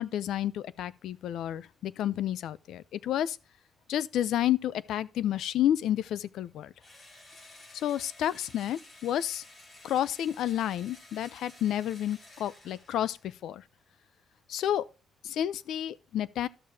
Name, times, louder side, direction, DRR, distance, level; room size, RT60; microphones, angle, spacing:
voice 1, 0.0-3.4 3.9-6.7 7.7-9.4 9.8-13.6 14.5-14.8 15.2-16.5, left 11 dB, 85° left, 0.4 m, -30 dB
Engine / Drill, 6.8-13.4, left 2 dB, 40° left, 3.8 m, -53 dB
13.0 x 6.7 x 2.7 m
cardioid pair, 140°, 0 cm